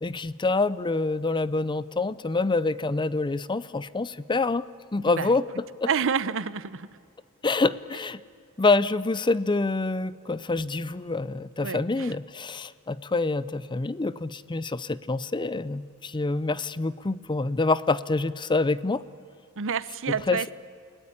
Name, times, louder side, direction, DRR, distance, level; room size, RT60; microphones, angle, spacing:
voice 1, 0.0-4.6 4.9-5.9 7.4-8.2 8.6-19.0 20.3-20.5, left 3 dB, 20° left, 18 dB, 0.5 m, -26 dB
voice 2, 5.1-5.4 5.9-6.9 11.6-12.1 19.6-20.5, right 6 dB, 65° right, 17 dB, 0.8 m, -29 dB
29.0 x 17.5 x 9.9 m, 2.4 s
head